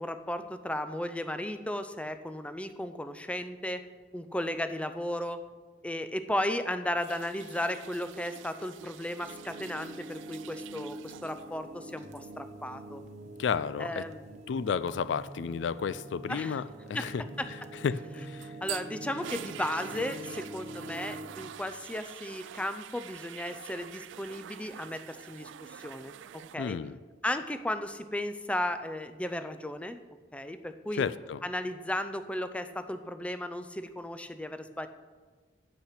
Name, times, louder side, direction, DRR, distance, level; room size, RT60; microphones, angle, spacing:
voice 1, 0.0-3.8 4.1-5.4 5.8-13.0 13.8-14.4 16.3-16.6 16.9-17.1 17.4-17.5 18.4-26.1 26.5-26.8 27.2-30.0 30.3-31.0 31.4-34.9, left 1 dB, 5° left, 10 dB, 0.5 m, -35 dB
sound 1, 7.0-11.6 11.9-12.2 18.0-26.6, right 11 dB, 80° right, 0.3 m, -46 dB
sound 2, 9.2-21.5, right 1 dB, 40° right, 0.8 m, -45 dB
voice 2, 13.4-14.0 14.5-16.6 16.9-17.2 17.8-18.5 26.6-27.0 31.0-31.4, left 6 dB, 70° left, 16 dB, 0.3 m, -32 dB
8.7 x 8.3 x 5.8 m, 1.4 s
head